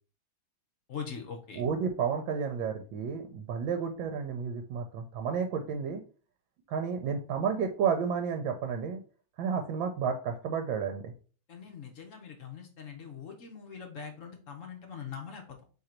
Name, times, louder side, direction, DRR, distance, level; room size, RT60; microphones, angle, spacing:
voice 1, 0.9-1.6 11.5-15.6, left 6 dB, 55° left, 3 dB, 0.9 m, -42 dB
voice 2, 1.5-6.0 6.7-9.0 9.4-11.1, right 6 dB, 80° right, 5 dB, 1.3 m, -31 dB
3.8 x 3.3 x 4.3 m, 0.39 s
omnidirectional pair, 2.2 m